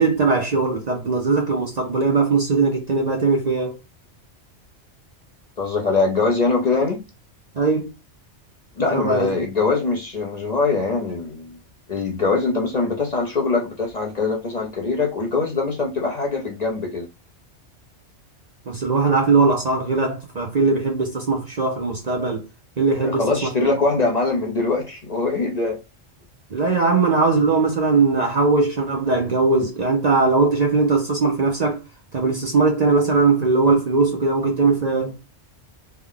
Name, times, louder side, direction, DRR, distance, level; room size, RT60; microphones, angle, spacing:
voice 1, 0.0-3.8 7.6-7.9 8.9-9.3 18.7-22.4 22.8-23.5 26.5-31.8 32.1-35.2, right 3 dB, 45° right, 0.7 m, -20 dB
voice 2, 5.6-7.0 8.8-11.6 11.9-17.1 23.0-25.8, left 3 dB, 40° left, 0.7 m, -22 dB
3.4 x 2.2 x 3.6 m
omnidirectional pair, 1.2 m